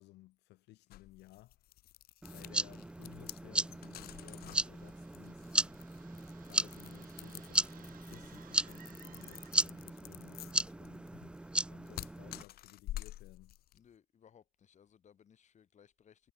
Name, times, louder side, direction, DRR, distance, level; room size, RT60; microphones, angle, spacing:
voice 1, 0.0-1.6 2.3-5.5 6.5-13.6, left 18 dB, 85° left, 6.5 m, -58 dB
sound 1, 0.9-13.8, left 14 dB, 65° left, 0.9 m, -49 dB
sound 2, 2.2-12.4, right 1 dB, 5° right, 0.4 m, -36 dB
sound 3, 4.1-10.0, right 10 dB, 55° right, 5.6 m, -62 dB
voice 2, 13.7-16.3, left 8 dB, 45° left, 3.9 m, -63 dB
cardioid pair, 110°, 17 cm